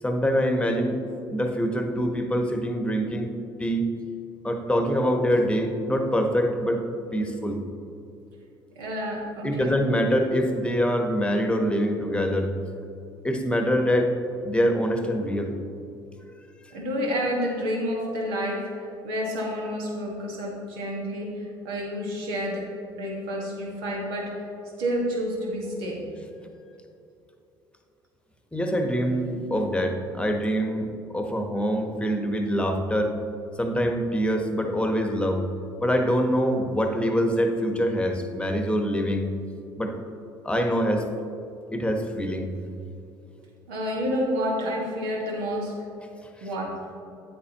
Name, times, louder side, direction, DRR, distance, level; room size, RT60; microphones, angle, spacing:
voice 1, 0.0-1.0 1.3-3.3 3.6-3.9 4.4-6.8 7.1-7.6 9.4-12.5 13.2-14.1 14.4-15.6 28.5-30.9 31.1-33.2 33.6-35.4 35.8-39.3 39.8-40.0 40.4-41.1 41.7-42.5 46.4-46.5, equal, 10° left, 4 dB, 1.2 m, -24 dB
voice 2, 8.7-9.7 16.7-22.7 23.0-24.4 24.8-26.1 43.7-45.7 46.4-46.8, equal, 80° right, -3 dB, 1.8 m, -29 dB
9.4 x 8.4 x 3.0 m, 2.7 s
hypercardioid pair, 60°, 12 cm